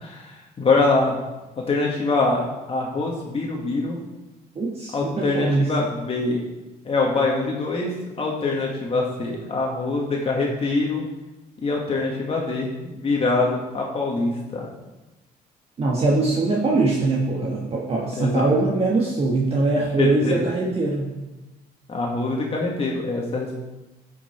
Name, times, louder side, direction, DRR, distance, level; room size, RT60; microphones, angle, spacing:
voice 1, 0.0-1.2 1.7-4.0 4.9-6.4 6.9-7.9 8.2-11.0 11.6-14.7 18.2-18.5 20.0-20.4 21.9-23.6, left 3 dB, 35° left, -2 dB, 1.7 m, -24 dB
voice 2, 4.5-5.9 15.8-21.1, right 3 dB, 35° right, -2 dB, 1.5 m, -22 dB
12.0 x 5.9 x 4.4 m, 1.1 s
cardioid pair, 110°, 17 cm